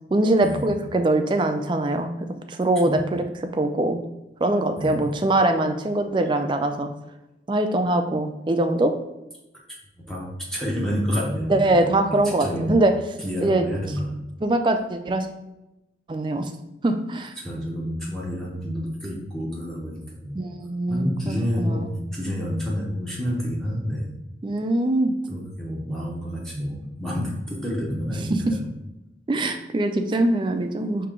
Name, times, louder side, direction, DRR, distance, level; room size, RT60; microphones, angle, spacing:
voice 1, 0.1-2.1 2.5-3.2 3.5-4.0 4.4-6.9 7.5-8.9 11.5-12.9 13.4-13.6 14.4-15.3 16.1-16.5 16.8-17.3 20.3-21.9 24.4-25.2 28.3-28.6 29.3-31.1, right 2 dB, 25° right, 6 dB, 0.3 m, -22 dB
voice 2, 4.8-5.2 10.1-12.8 13.2-14.1 17.4-20.4 20.9-24.1 25.3-28.7, equal, 5° left, -4 dB, 0.7 m, -29 dB
4.9 x 2.8 x 3.6 m, 0.94 s
head